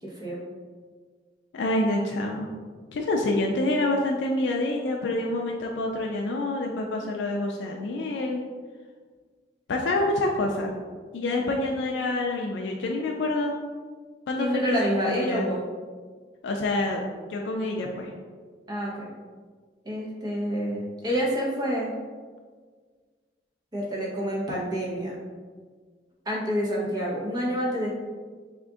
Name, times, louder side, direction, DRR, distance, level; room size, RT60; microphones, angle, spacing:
voice 1, 0.0-0.4 14.4-15.6 18.7-19.1 19.8-21.9 23.7-25.2 26.2-27.9, equal, 25° right, -4 dB, 0.8 m, -28 dB
voice 2, 1.5-2.5 2.9-8.4 9.7-10.7 11.1-13.5 14.3-14.8 15.0-15.5 16.4-18.1, left 2 dB, 85° left, 1 dB, 0.4 m, -27 dB
3.6 x 2.5 x 3.5 m, 1.5 s
head